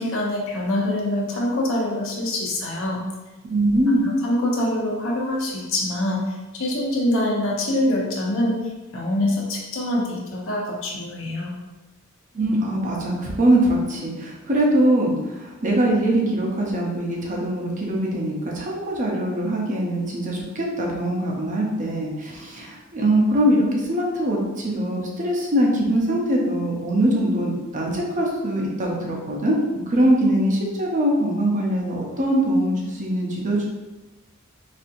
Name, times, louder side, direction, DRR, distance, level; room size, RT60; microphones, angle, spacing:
voice 1, 0.0-3.0 4.2-8.6 8.9-11.5, left 1 dB, 65° left, -2 dB, 0.8 m, -24 dB
voice 2, 3.4-4.1 12.3-29.6 29.9-33.7, right 1 dB, 35° right, -2 dB, 0.7 m, -22 dB
4.2 x 2.7 x 2.6 m, 1.1 s
head